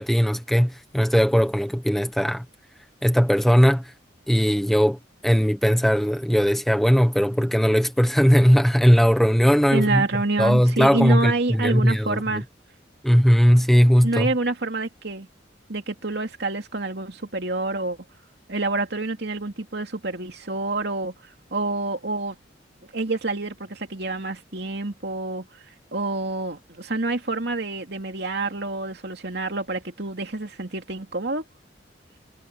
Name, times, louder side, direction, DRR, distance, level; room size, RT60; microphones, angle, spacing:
voice 1, 0.0-2.4 3.0-3.8 4.3-5.0 5.2-10.0 10.4-12.2 13.0-14.3, equal, ahead, 1.1 m, -19 dB
voice 2, 9.7-12.4 14.0-15.3 15.7-18.0 18.5-22.4 22.9-25.5 25.9-31.4, right 2 dB, 65° right, 2.8 m, -27 dB
head